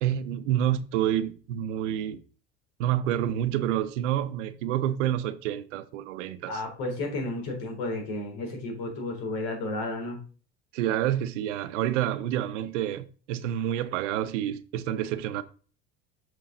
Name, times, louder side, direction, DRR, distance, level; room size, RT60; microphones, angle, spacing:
voice 1, 0.0-2.2 2.8-6.6 10.7-15.4, right 11 dB, 80° right, 0.9 m, -28 dB
voice 2, 6.4-10.2, left 2 dB, 70° left, 3.6 m, -32 dB
7.7 x 5.4 x 3.9 m
supercardioid pair, 100°, 36 cm